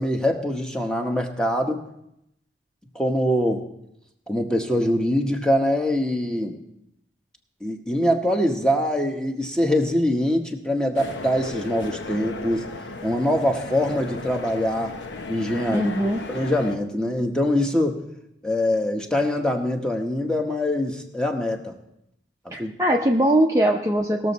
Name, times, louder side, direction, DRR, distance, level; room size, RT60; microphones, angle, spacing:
voice 1, 0.0-1.8 2.9-3.6 4.3-6.5 7.6-12.7 13.0-14.9 15.3-18.0 18.4-21.8 22.6-22.7, left 1 dB, 5° left, 3 dB, 0.9 m, -23 dB
sound 1, 11.0-16.8, left 3 dB, 85° left, 0.9 m, -35 dB
voice 2, 15.7-16.2 22.5-24.3, right 1 dB, 15° right, 0 dB, 0.6 m, -21 dB
19.0 x 6.9 x 4.1 m, 0.81 s
head